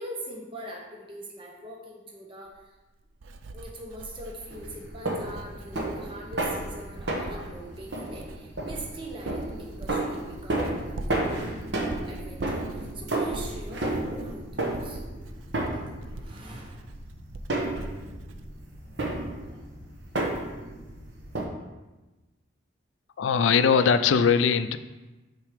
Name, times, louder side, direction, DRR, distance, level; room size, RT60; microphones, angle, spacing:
voice 1, 0.0-2.7 3.5-11.4 12.1-15.0 15.7-16.9, right 1 dB, 25° right, -1 dB, 0.9 m, -42 dB
Writing, 2.5-19.5 19.8-20.3, right 2 dB, 85° right, 0.5 m, -43 dB
sound 1, 4.5-21.4, right 2 dB, 65° right, 1.0 m, -33 dB
voice 2, 23.2-24.8, left 6 dB, 75° left, 12 dB, 0.4 m, -21 dB
6.5 x 4.5 x 5.0 m, 1.1 s
head